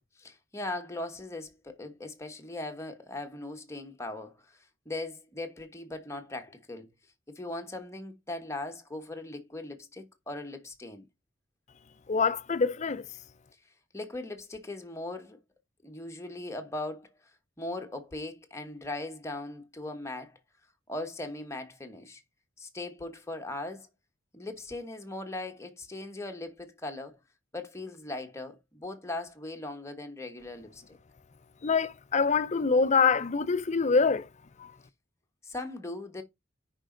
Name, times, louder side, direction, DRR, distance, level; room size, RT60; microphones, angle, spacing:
voice 1, 0.2-6.9 7.3-11.1 13.9-15.4 15.8-17.2 17.6-20.4 20.9-22.2 22.6-23.9 24.3-27.2 27.5-31.0 35.4-36.2, left 2 dB, 15° left, 1.2 m, -39 dB
voice 2, 12.1-13.0 31.6-34.3 34.6-34.7, left 5 dB, 35° left, 0.5 m, -25 dB
9.9 x 5.2 x 3.8 m
head